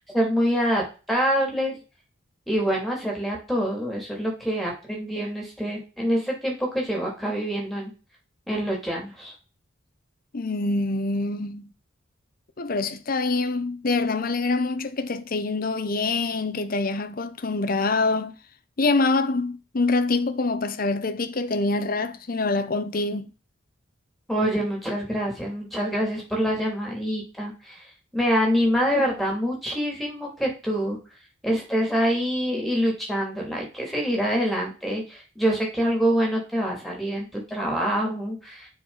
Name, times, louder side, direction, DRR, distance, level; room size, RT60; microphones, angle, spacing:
voice 1, 0.1-1.8 2.5-7.9 8.5-9.3 24.3-27.9 28.1-31.0 31.4-38.7, equal, ahead, 2.7 m, -25 dB
voice 2, 10.3-11.7 12.6-18.4 18.8-23.3, left 3 dB, 45° left, 0.7 m, -25 dB
9.2 x 4.7 x 4.0 m
head